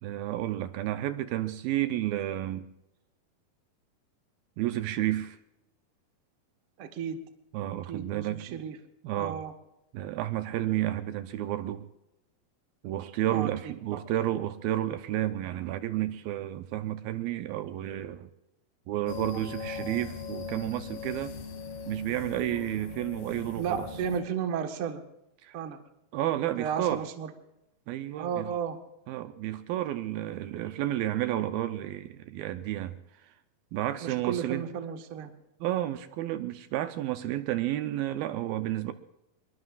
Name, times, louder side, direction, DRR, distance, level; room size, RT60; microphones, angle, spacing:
voice 1, 0.0-2.7 4.6-5.4 7.5-8.6 9.0-9.4 9.9-11.8 12.8-18.3 18.9-21.3 21.9-23.9 25.4-25.6 26.1-27.0 27.9-28.5 29.1-33.0 33.7-34.7 35.6-38.9, right 13 dB, 80° right, 10 dB, 2.4 m, -31 dB
voice 2, 6.8-7.2 7.9-8.8 9.2-9.5 13.3-13.5 13.9-14.0 23.5-25.0 25.5-25.8 26.6-27.3 28.2-28.8 34.0-35.3, right 7 dB, 60° right, 5 dB, 1.5 m, -33 dB
sound 1, 19.1-24.2, left 5 dB, 85° left, 3.7 m, -40 dB
24.5 x 22.5 x 2.4 m, 0.89 s
omnidirectional pair, 4.5 m